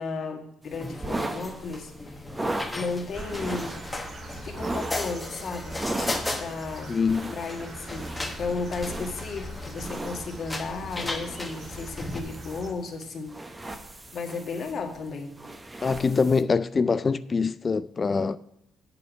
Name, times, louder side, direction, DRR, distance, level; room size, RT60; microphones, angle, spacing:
voice 1, 0.0-2.2 2.7-3.8 4.4-5.8 6.3-6.9 7.3-13.3 14.1-15.3, left 4 dB, 50° left, 1.7 m, -34 dB
sound 1, 0.6-16.4, right 2 dB, 15° right, 0.9 m, -38 dB
sound 2, 0.7-12.2, left 2 dB, 15° left, 1.1 m, -37 dB
sound 3, 3.1-12.7, right 1 dB, 45° right, 2.1 m, -42 dB
voice 2, 6.9-7.3 15.8-18.4, left 5 dB, 30° left, 0.3 m, -24 dB
8.5 x 6.8 x 5.1 m
cardioid pair, 100°, 0 cm